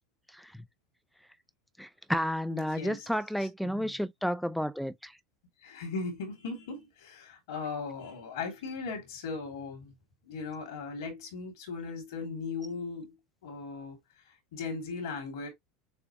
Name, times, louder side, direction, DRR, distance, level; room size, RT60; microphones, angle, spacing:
voice 1, 1.8-5.1, equal, ahead, 0.5 m, -31 dB
voice 2, 2.5-3.1 3.4-3.9 5.6-9.9 10.3-13.2 13.4-14.0 14.5-15.5, left 4 dB, 80° left, 2.6 m, -38 dB
6.9 x 2.4 x 3.0 m
hypercardioid pair, 100°, 2 cm